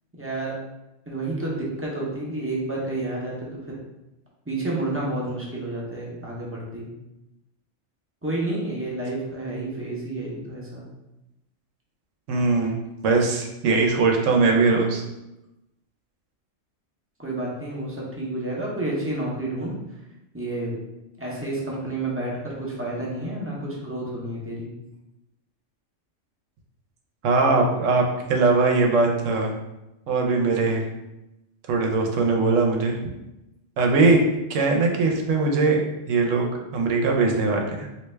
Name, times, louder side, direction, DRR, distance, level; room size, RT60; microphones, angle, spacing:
voice 1, 0.2-0.5 1.1-3.7 4.5-6.9 8.2-10.8 17.2-19.7 20.3-20.7 21.2-24.7, right 2 dB, 15° right, -5 dB, 0.6 m, -30 dB
voice 2, 12.3-12.8 13.0-15.0 27.2-29.5 30.1-30.8 31.7-33.0 33.8-34.2 34.5-35.8 36.1-37.9, right 3 dB, 80° right, 1 dB, 1.0 m, -21 dB
3.2 x 2.7 x 3.2 m, 0.94 s
omnidirectional pair, 1.3 m